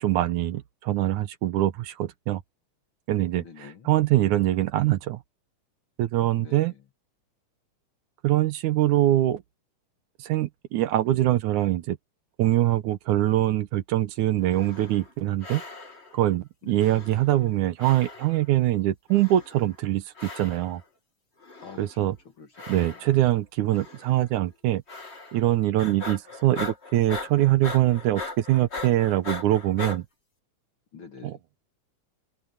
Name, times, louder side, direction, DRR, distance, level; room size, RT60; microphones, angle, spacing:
voice 1, 0.0-2.4 3.1-5.2 6.0-6.7 8.2-9.4 10.2-12.0 12.4-15.6 16.1-20.8 21.8-22.2 22.7-24.8 25.3-30.0 31.2-31.4, right 14 dB, 75° right, 2.2 m, -23 dB
voice 2, 3.4-3.9 6.4-6.7 16.6-16.8 21.6-22.1 22.4-22.9 30.9-31.4, left 6 dB, 45° left, 2.1 m, -46 dB
sound 1, 14.4-15.1 15.4-16.2 16.8-17.5 17.8-18.5 19.1-19.7 20.1-20.8 21.4-22.0 22.5-23.3 23.7-24.2 24.9-25.5 25.8-30.0, left 3 dB, 25° left, 2.1 m, -39 dB
omnidirectional pair, 3.7 m